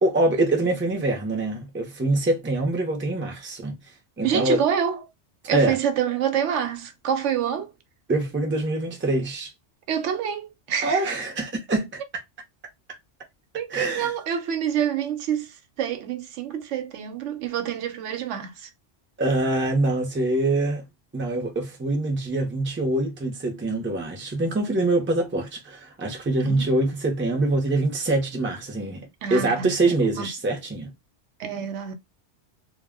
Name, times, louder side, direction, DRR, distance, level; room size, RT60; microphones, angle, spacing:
voice 1, 0.0-3.8 4.2-4.6 5.5-5.8 8.1-9.5 10.8-12.0 13.7-14.1 19.2-20.8 21.1-30.9, right 2 dB, 15° right, 0.4 m, -24 dB
voice 2, 4.2-5.0 5.5-7.7 9.9-11.1 13.5-18.7 26.4-26.7 29.2-30.3 31.4-31.9, right 8 dB, 85° right, 0.9 m, -27 dB
2.1 x 2.1 x 3.3 m
omnidirectional pair, 1.2 m